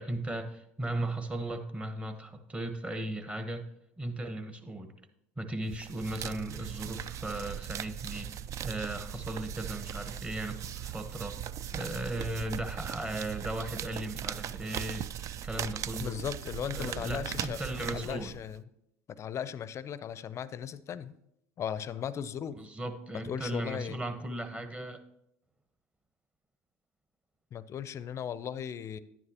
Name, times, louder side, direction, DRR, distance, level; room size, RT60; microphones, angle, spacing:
voice 1, 0.0-3.7 4.0-4.9 5.4-11.4 11.7-15.1 15.4-16.2 16.7-18.3 22.5-25.0, right 1 dB, 15° right, 8 dB, 1.1 m, -37 dB
sound 1, 5.7-18.6, right 10 dB, 45° right, 0.4 m, -39 dB
voice 2, 16.0-18.6 19.2-21.1 21.6-22.6 23.2-24.0 27.5-29.0, left 8 dB, 40° left, 16 dB, 0.5 m, -37 dB
10.5 x 9.7 x 2.9 m, 0.81 s
hypercardioid pair, 80°, 7 cm